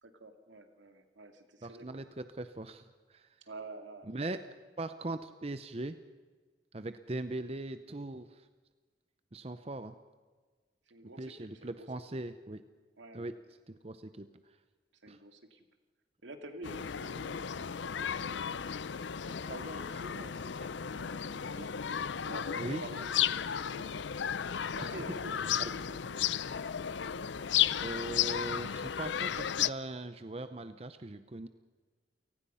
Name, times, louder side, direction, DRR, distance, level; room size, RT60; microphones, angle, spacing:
voice 1, 0.0-2.1 3.5-4.4 10.9-11.9 13.0-13.3 15.0-15.7 16.2-17.8 18.0-18.7 19.2-23.1 23.5-24.4 24.8-26.3, right 2 dB, 80° right, 7 dB, 2.4 m, -49 dB
voice 2, 1.6-3.4 4.1-6.0 6.7-8.5 9.3-10.0 11.2-12.6 13.1-13.4 13.7-14.6 15.1-15.2 22.6-22.8 24.8-24.9 25.6-25.7 27.8-31.5, right 2 dB, 30° right, 11 dB, 0.7 m, -40 dB
sound 1, 16.6-29.7, left 9 dB, 75° left, 0.5 m, -34 dB
29.0 x 18.5 x 5.7 m, 1.4 s
head